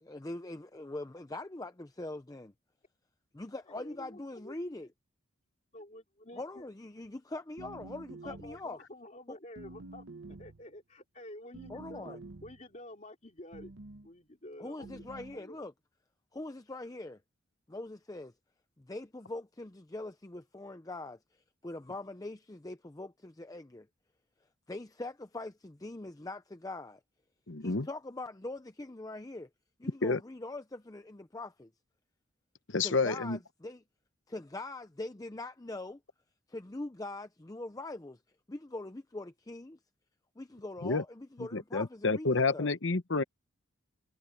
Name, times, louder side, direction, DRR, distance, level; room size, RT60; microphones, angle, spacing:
voice 1, 0.0-2.5 3.3-4.9 6.3-8.8 9.3-9.4 11.7-12.2 14.6-15.7 16.3-17.2 17.7-18.3 18.8-23.9 24.7-27.0 27.6-29.5 29.8-31.7 32.8-33.8 34.3-36.0 36.5-38.2 38.5-39.8 40.4-42.7, left 2 dB, 15° left, 0.5 m, -42 dB
voice 2, 3.7-4.5 5.7-6.7 8.2-13.7 14.0-15.6, left 1 dB, 35° left, 3.0 m, -50 dB
sound 1, 7.6-8.7 9.5-10.7 11.5-12.6 13.5-14.1 14.8-15.4, right 2 dB, 65° right, 1.0 m, -48 dB
voice 3, 27.5-27.9 30.0-30.2 32.7-33.4 40.8-41.0 41.5-43.2, left 3 dB, 60° left, 1.0 m, -29 dB
head